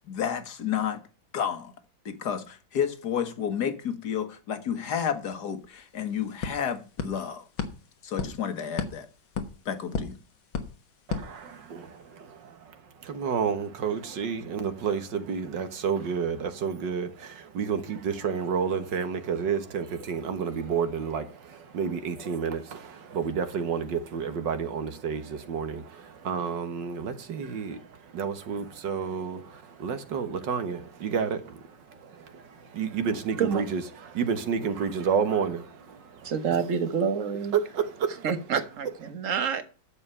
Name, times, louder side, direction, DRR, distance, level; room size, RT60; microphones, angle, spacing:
voice 1, 0.1-1.0 1.3-1.7 2.1-7.5 8.0-9.1 9.7-10.2, left 8 dB, 60° left, 1.8 m, -31 dB
sound 1, 5.3-5.4 5.6-12.0, left 6 dB, 90° left, 2.2 m, -37 dB
voice 2, 11.1-12.0 13.1-36.3 37.7-38.3, right 6 dB, 70° right, 1.9 m, -30 dB
voice 3, 36.2-37.6 38.2-39.6, right 6 dB, 45° right, 1.5 m, -27 dB
11.5 x 7.2 x 5.5 m
omnidirectional pair, 2.1 m